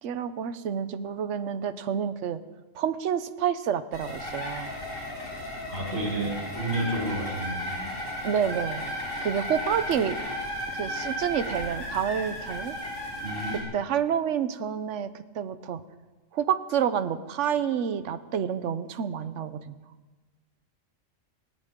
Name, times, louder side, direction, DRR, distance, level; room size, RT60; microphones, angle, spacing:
voice 1, 0.0-2.4 2.7-4.7 8.2-8.8 9.2-10.2 10.7-12.8 13.7-15.1 15.3-15.8 16.3-19.7, right 8 dB, 70° right, 12 dB, 1.1 m, -28 dB
sound 1, 3.9-13.6, left 1 dB, 80° left, 3.9 m, -34 dB
voice 2, 5.7-7.8 13.2-13.6, right 1 dB, 55° right, -2 dB, 5.2 m, -31 dB
19.5 x 19.5 x 3.7 m, 1.2 s
omnidirectional pair, 1.3 m